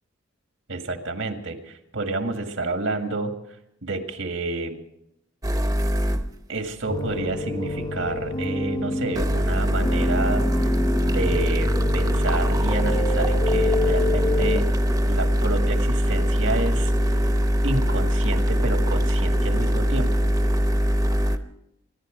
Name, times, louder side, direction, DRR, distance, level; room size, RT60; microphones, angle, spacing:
voice 1, 0.7-3.4 3.8-4.8 6.5-10.5 11.0-14.7 15.1-16.9 17.6-20.3, right 2 dB, 80° right, 5 dB, 1.9 m, -29 dB
sound 1, 5.4-6.4 9.1-21.4, equal, 20° right, 0.8 m, -22 dB
sound 2, 6.9-14.6, left 2 dB, 25° left, 0.9 m, -28 dB
24.0 x 11.5 x 5.1 m, 0.84 s
head